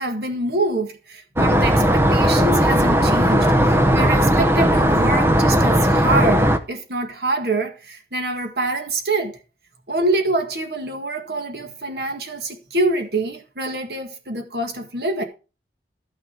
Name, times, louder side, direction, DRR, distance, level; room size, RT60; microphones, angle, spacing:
voice 1, 0.0-9.4 9.9-15.2, right 2 dB, 60° right, 1.9 m, -25 dB
sound 1, 1.4-6.6, equal, 15° right, 0.8 m, -17 dB
13.0 x 6.3 x 4.6 m
head